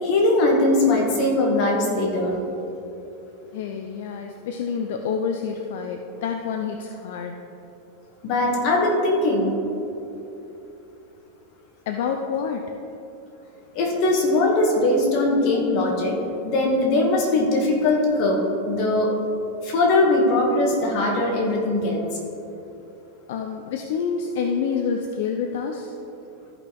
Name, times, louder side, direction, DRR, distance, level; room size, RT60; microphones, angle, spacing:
voice 1, 0.0-2.4 8.2-9.5 13.7-16.1 16.5-18.4 18.7-19.1 19.6-22.0, left 2 dB, 50° left, -1 dB, 2.0 m, -20 dB
voice 2, 3.5-7.4 11.9-12.7 23.3-26.0, left 6 dB, 70° left, 4 dB, 0.6 m, -28 dB
14.0 x 5.8 x 3.5 m, 2.9 s
supercardioid pair, 130°, 0 cm